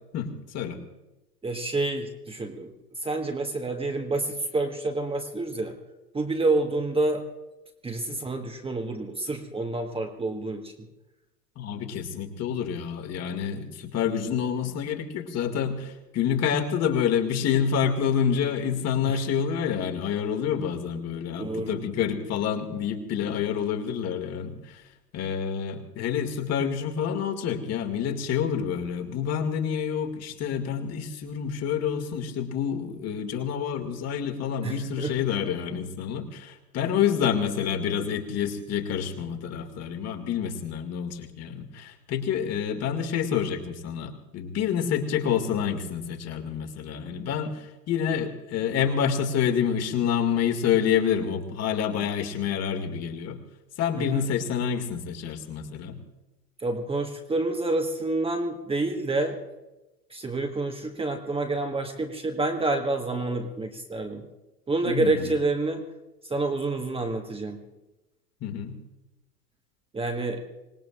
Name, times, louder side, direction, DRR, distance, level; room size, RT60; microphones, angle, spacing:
voice 1, 0.1-0.8 8.1-8.2 11.6-24.8 25.1-53.4 53.8-56.0 64.8-65.3 68.4-68.8, left 8 dB, 35° left, 4 dB, 2.3 m, -28 dB
voice 2, 1.4-2.7 3.0-5.8 6.1-7.2 7.8-10.7 19.0-19.2 21.4-21.8 34.6-35.1 53.9-54.2 56.6-59.4 60.1-64.2 64.7-65.8 66.3-67.6 69.9-70.4, right 2 dB, 10° right, 3 dB, 1.5 m, -28 dB
26.0 x 19.5 x 2.5 m, 1.0 s
figure-of-eight pair, 90°, 48 cm